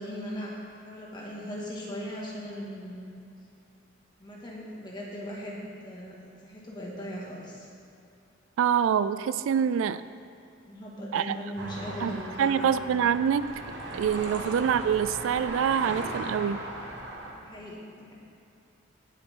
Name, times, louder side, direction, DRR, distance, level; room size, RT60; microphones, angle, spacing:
voice 1, 0.0-3.0 4.2-7.7 10.7-12.7 14.3-14.5 17.3-18.1, equal, 20° left, -4 dB, 2.0 m, -39 dB
voice 2, 8.6-10.0 11.1-11.4 12.0-12.1 12.4-13.5 13.9-16.6, right 8 dB, 75° right, 14 dB, 0.3 m, -25 dB
sound 1, 11.6-17.3, right 1 dB, 55° right, 1.5 m, -37 dB
17.5 x 8.1 x 3.8 m, 2.5 s
head